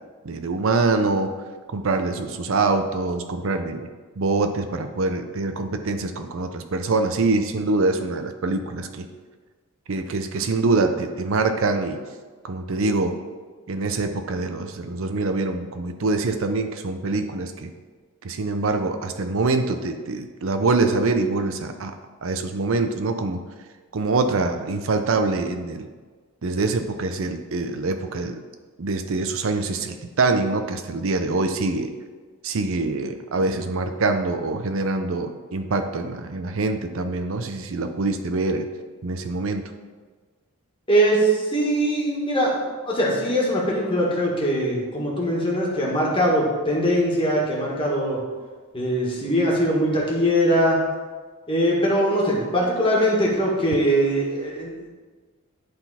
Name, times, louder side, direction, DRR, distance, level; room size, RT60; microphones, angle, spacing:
voice 1, 0.2-1.3 1.7-3.9 4.2-9.1 9.9-12.0 12.4-13.2 13.7-17.7 18.2-21.9 22.2-23.4 23.9-25.9 26.4-28.4 28.8-31.9 32.4-38.7 39.0-39.7, right 3 dB, 65° right, 7 dB, 0.5 m, -24 dB
voice 2, 40.9-48.2 48.7-50.8 51.5-54.9, equal, 25° left, -4 dB, 1.7 m, -21 dB
11.0 x 4.0 x 4.2 m, 1.4 s
head